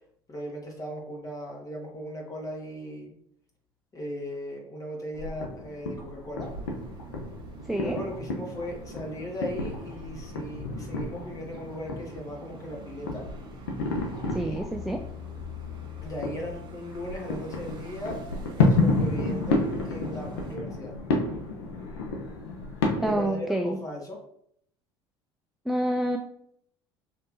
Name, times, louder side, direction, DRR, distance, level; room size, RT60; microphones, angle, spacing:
voice 1, 0.3-3.1 3.9-6.5 7.7-13.2 14.3-14.6 16.0-18.2 18.5-20.9 23.0-24.2, equal, 25° left, -1 dB, 1.7 m, -37 dB
sound 1, 5.1-23.3, left 3 dB, 85° left, 0.8 m, -31 dB
sound 2, 6.4-20.6, equal, 40° right, 1.1 m, -45 dB
voice 2, 7.6-8.0 14.3-15.0 23.0-23.8 25.7-26.2, right 1 dB, ahead, 4 dB, 0.4 m, -28 dB
5.4 x 3.4 x 2.7 m, 0.69 s
hypercardioid pair, 75°, 13 cm